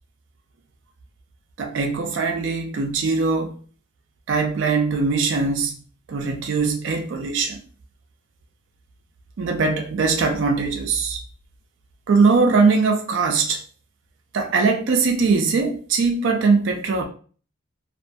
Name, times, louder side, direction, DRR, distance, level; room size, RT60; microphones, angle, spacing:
voice 1, 1.6-3.5 4.3-5.7 6.1-7.6 9.4-11.2 12.1-13.6 14.3-17.1, right 4 dB, 65° right, 0.4 m, -21 dB
2.3 x 2.2 x 2.5 m
head